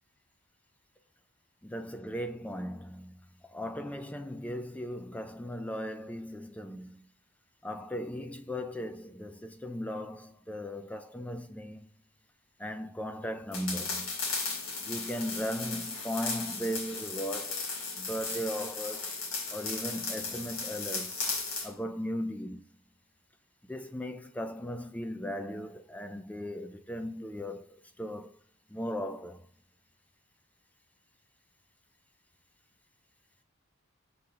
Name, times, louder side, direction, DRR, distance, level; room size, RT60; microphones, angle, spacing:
voice 1, 1.6-3.1 3.5-7.0 7.6-11.9 12.6-14.1 14.8-17.7 18.0-19.1 19.5-21.1 21.6-22.6 23.7-28.3 28.7-29.5, equal, 5° left, 0.3 m, -37 dB
sound 1, 13.5-21.7, left 4 dB, 80° left, 1.9 m, -36 dB
6.5 x 4.2 x 3.8 m
head